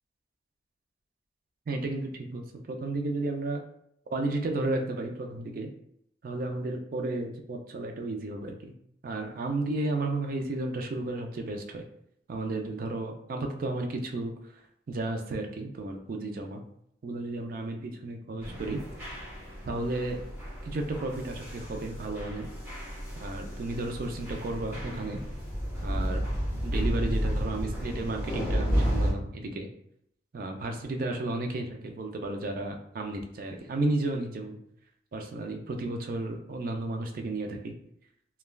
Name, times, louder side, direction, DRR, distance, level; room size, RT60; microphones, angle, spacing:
voice 1, 1.7-3.6 4.1-5.7 6.2-8.7 9.0-11.9 12.3-14.3 14.9-16.6 17.0-18.8 19.6-20.2 20.6-22.5 23.2-25.2 25.8-26.2 26.6-29.7 30.3-34.6 35.1-37.8, right 2 dB, 50° right, 3 dB, 0.4 m, -33 dB
sound 1, 18.4-29.1, equal, 15° right, 1.0 m, -32 dB
3.1 x 2.3 x 2.2 m, 0.71 s
head